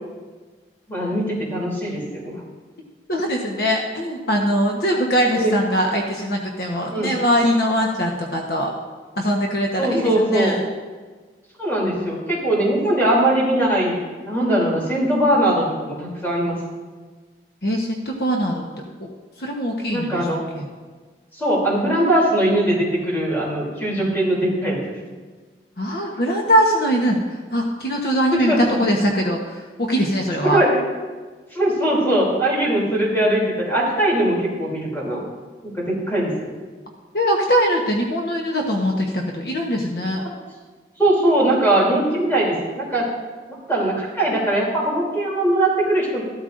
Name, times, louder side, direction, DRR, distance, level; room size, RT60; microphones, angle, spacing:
voice 1, 0.9-2.4 5.3-5.5 6.9-7.1 9.8-10.6 11.6-14.0 14.3-16.6 19.9-20.4 21.3-25.0 28.3-28.8 30.4-30.8 31.5-35.2 35.6-36.5 41.0-43.1 43.7-46.2, right 1 dB, 10° left, -5 dB, 3.1 m, -20 dB
voice 2, 3.1-8.7 9.2-10.6 17.6-18.6 19.4-20.3 20.5-20.7 25.8-30.6 37.1-40.2, equal, 60° left, 0 dB, 1.1 m, -21 dB
14.0 x 12.5 x 2.6 m, 1.4 s
head